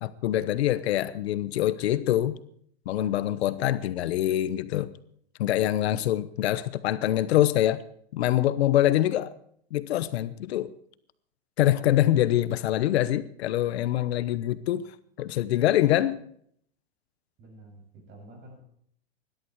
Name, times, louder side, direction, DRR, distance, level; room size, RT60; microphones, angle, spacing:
voice 1, 0.0-2.4 2.9-4.9 5.4-7.8 8.1-9.3 9.7-10.7 11.6-14.9 15.2-16.2, left 13 dB, 75° left, 15 dB, 1.1 m, -24 dB
voice 2, 5.9-6.5 17.4-18.6, right 1 dB, 35° right, 1 dB, 7.5 m, -50 dB
20.0 x 12.0 x 4.7 m, 0.65 s
supercardioid pair, 145°, 32 cm